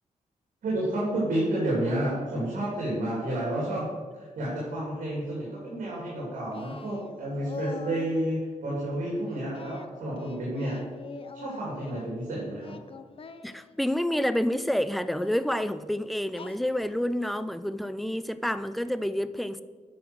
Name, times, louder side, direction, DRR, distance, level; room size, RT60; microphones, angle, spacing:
voice 1, 0.6-3.9 4.1-10.8 11.3-12.8, right 1 dB, 75° right, -5 dB, 3.1 m, -30 dB
Singing, 6.5-8.2 9.5-12.1 12.6-14.3 15.1-15.4 16.3-17.0, left 4 dB, 40° left, 0.7 m, -44 dB
voice 2, 13.4-19.6, equal, ahead, 13 dB, 0.4 m, -28 dB
9.4 x 6.0 x 6.3 m, 1.5 s
cardioid pair, 100°, 14 cm